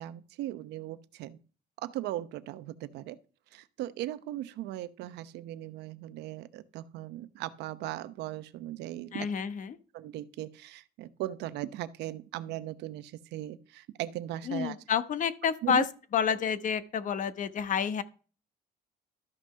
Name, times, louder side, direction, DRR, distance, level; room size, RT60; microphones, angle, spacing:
voice 1, 0.0-1.4 1.8-3.2 3.5-9.3 9.9-14.8 15.6-15.8, right 14 dB, 85° right, 0.8 m, -38 dB
voice 2, 9.1-9.8 14.5-15.9 16.1-18.0, left 7 dB, 50° left, 1.1 m, -29 dB
13.0 x 6.2 x 5.6 m
cardioid pair, 110°, 17 cm